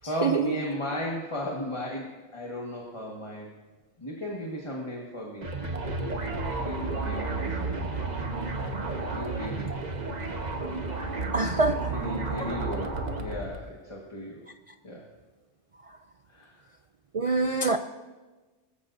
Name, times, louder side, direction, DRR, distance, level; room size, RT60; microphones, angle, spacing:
voice 1, 0.0-3.5 4.0-5.5 6.4-7.7 9.1-9.8 11.9-14.5 14.8-15.1 16.3-16.6, equal, 25° left, -2 dB, 1.6 m, -35 dB
sound 1, 5.4-13.6, right 3 dB, 40° right, 1.2 m, -32 dB
voice 2, 11.3-11.8 17.1-17.8, right 3 dB, 60° right, 7 dB, 0.3 m, -24 dB
21.0 x 14.5 x 2.6 m, 1.2 s
omnidirectional pair, 1.2 m